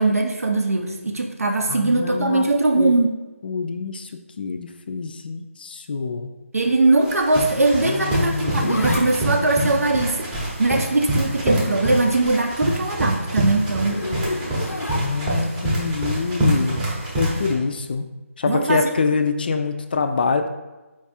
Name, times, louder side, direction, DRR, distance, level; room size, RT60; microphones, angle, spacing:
voice 1, 0.0-3.2 6.5-10.2 10.6-14.0 18.4-18.9, right 2 dB, 80° right, 2 dB, 0.6 m, -20 dB
voice 2, 1.7-2.5 2.8-2.9 3.4-4.1 4.4-6.3 7.8-9.1 15.0-16.8 17.2-18.1 18.4-20.5, left 4 dB, 40° left, 7 dB, 0.3 m, -25 dB
sound 1, 7.0-17.5, right 1 dB, 10° right, 0.7 m, -25 dB
Zipper (clothing), 8.0-12.5 12.8-15.5 17.1-17.4, left 2 dB, 90° left, 0.6 m, -33 dB
4.5 x 2.4 x 4.1 m, 1.1 s
figure-of-eight pair, 160°, 8 cm